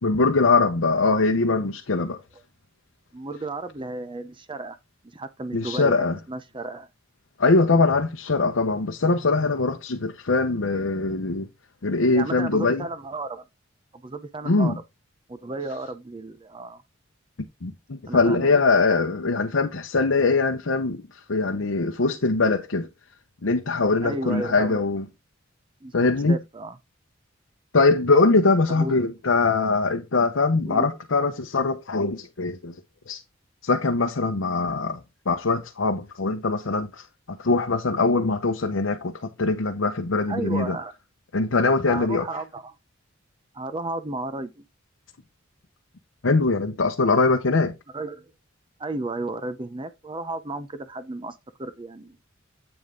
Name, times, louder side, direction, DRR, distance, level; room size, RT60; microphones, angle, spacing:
voice 1, 0.0-2.2 5.5-6.2 7.4-11.5 11.8-12.9 14.4-14.8 17.6-22.9 23.4-25.1 25.9-26.4 27.7-32.8 33.1-33.2 33.6-35.0 35.3-40.8 41.3-42.3 46.2-47.7, left 3 dB, 70° left, 0.8 m, -22 dB
voice 2, 3.1-4.8 5.1-6.0 6.3-6.9 12.1-13.4 13.9-14.7 15.3-16.8 18.1-18.5 24.0-24.8 25.8-26.8 28.7-29.1 30.7-30.9 40.3-40.9 41.9-42.7 43.5-44.6 47.9-48.3 48.8-52.2, right 2 dB, 25° right, 0.7 m, -33 dB
8.2 x 5.2 x 3.7 m
head